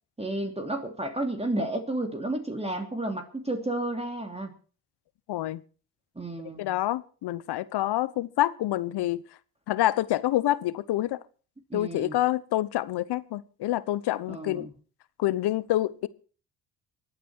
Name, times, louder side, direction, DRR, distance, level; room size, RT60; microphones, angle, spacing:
voice 1, 0.2-4.5 6.2-6.7 11.7-12.2 14.3-14.7, right 1 dB, 15° right, 2.8 m, -32 dB
voice 2, 5.3-5.6 6.6-9.2 9.7-11.2 11.7-14.7 15.2-16.1, left 14 dB, 70° left, 1.1 m, -27 dB
24.0 x 9.2 x 4.7 m
supercardioid pair, 60°, 42 cm